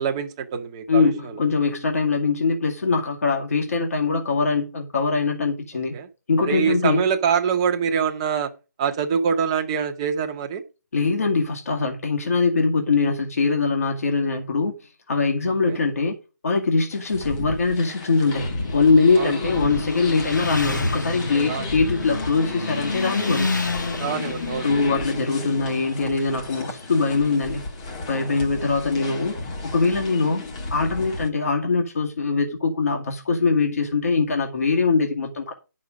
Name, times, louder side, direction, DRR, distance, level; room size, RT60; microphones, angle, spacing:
voice 1, 0.0-1.4 5.9-6.1 6.4-8.5 8.8-10.6 15.7-15.9 19.2-19.3 21.5-21.7 24.0-25.0 29.0-29.1, right 7 dB, 15° right, 1.0 m, -25 dB
voice 2, 0.9-5.9 6.3-7.0 10.9-14.8 15.1-16.2 16.4-23.5 24.6-27.6 28.1-29.4 29.7-30.4 30.7-35.5, left 4 dB, 50° left, 2.3 m, -22 dB
sound 1, 16.9-31.3, left 3 dB, 20° left, 1.3 m, -33 dB
Motorcycle, 17.6-27.4, left 3 dB, 80° left, 2.5 m, -31 dB
11.0 x 6.3 x 5.3 m
hypercardioid pair, 170°, 10 cm